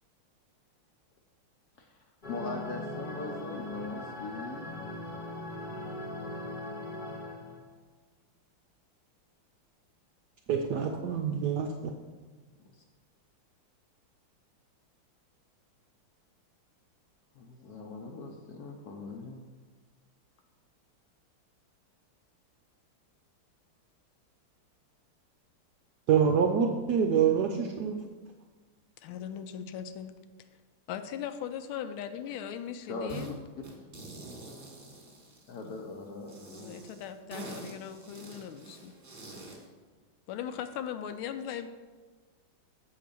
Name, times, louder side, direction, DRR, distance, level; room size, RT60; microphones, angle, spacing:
sound 1, 2.2-7.6, left 1 dB, 35° left, 0.9 m, -39 dB
voice 1, 2.3-4.7 12.6-12.8 17.3-19.4 32.9-33.1 35.5-36.8, left 3 dB, 65° left, 2 dB, 1.0 m, -41 dB
voice 2, 10.5-11.9 26.1-27.9, right 7 dB, 75° right, 3 dB, 0.9 m, -26 dB
voice 3, 29.0-30.1 30.9-33.4 36.6-38.9 40.3-41.7, left 9 dB, 80° left, 9 dB, 1.4 m, -39 dB
sound 2, 33.1-33.3 33.6-35.8 36.3-39.7, right 2 dB, 25° right, 1.5 m, -45 dB
7.7 x 4.8 x 6.8 m, 1.4 s
omnidirectional pair, 2.4 m